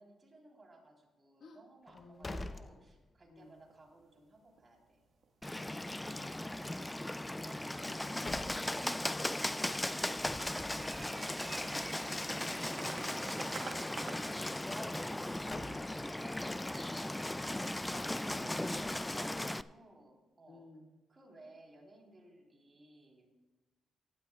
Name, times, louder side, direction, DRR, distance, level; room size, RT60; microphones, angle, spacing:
voice 1, 0.0-5.0 6.4-6.7 7.0-8.3 15.0-17.8 18.6-20.7 21.1-23.3, right 1 dB, 30° right, 0 dB, 3.7 m, -60 dB
sound 1, 1.8-3.5 3.9-4.0 7.8-9.0 15.1-16.4, left 2 dB, 30° left, 0.8 m, -46 dB
voice 2, 1.9-2.6 3.3-3.6 5.5-6.4 7.9-8.9 12.1-12.5 18.3-18.9 20.5-20.9, left 4 dB, 70° left, 2 dB, 1.7 m, -55 dB
sound 2, 3.4-3.9 4.1-4.3 4.6-4.8 5.1-5.5 5.7-6.3 6.8-6.9 7.6-8.0 8.7-9.6 9.8-14.4, right 4 dB, 60° right, 1.5 m, -49 dB
Bird, 5.4-19.6, left 1 dB, 10° left, 0.3 m, -37 dB
18.0 x 12.0 x 2.4 m, 1.2 s
cardioid pair, 80°, 0 cm